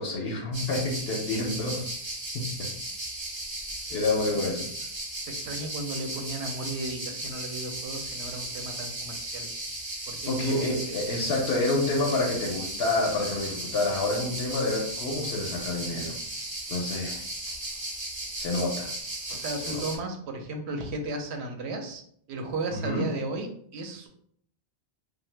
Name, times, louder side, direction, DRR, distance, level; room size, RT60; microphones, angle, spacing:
voice 1, 0.0-1.8 2.3-2.7 3.9-4.7 10.3-16.2 16.7-17.2 18.4-18.9 19.6-19.8 22.7-23.1, left 2 dB, 75° left, -2 dB, 0.8 m, -28 dB
sound 1, 0.5-20.0, right 1 dB, 30° right, 0.6 m, -36 dB
voice 2, 5.2-9.5 10.1-11.0 17.0-17.2 19.3-22.0 22.3-24.1, right 2 dB, 85° right, 4 dB, 0.9 m, -35 dB
2.7 x 2.2 x 3.2 m, 0.66 s
omnidirectional pair, 1.1 m